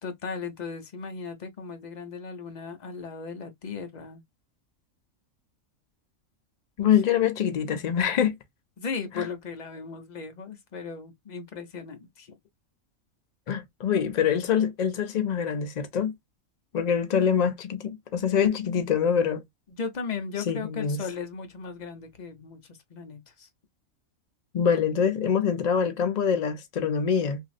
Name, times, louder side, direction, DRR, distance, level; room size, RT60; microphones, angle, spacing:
voice 1, 0.0-4.2 6.8-6.9 8.8-12.4 19.8-23.5, left 5 dB, 45° left, 0.6 m, -36 dB
voice 2, 6.8-8.3 13.5-16.1 16.7-19.4 20.5-21.0 24.5-27.4, left 7 dB, 90° left, 0.3 m, -25 dB
3.0 x 2.5 x 2.5 m
omnidirectional pair, 1.4 m